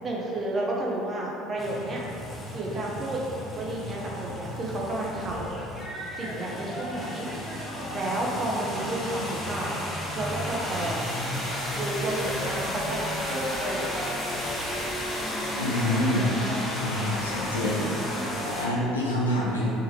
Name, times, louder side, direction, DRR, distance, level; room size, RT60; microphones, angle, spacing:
voice 1, 0.0-2.0 2.5-3.2 3.5-5.6 6.2-7.3 7.9-9.8 10.1-11.1 11.7-14.7 18.1-18.4, right 1 dB, 35° right, -3 dB, 0.7 m, -31 dB
sound 1, 1.6-18.7, left 1 dB, 15° left, 0.9 m, -33 dB
voice 2, 15.6-16.3 16.8-18.2 18.4-19.7, left 1 dB, 85° left, -5 dB, 0.6 m, -27 dB
3.7 x 3.4 x 2.9 m, 2.7 s
figure-of-eight pair, 65°, 0 cm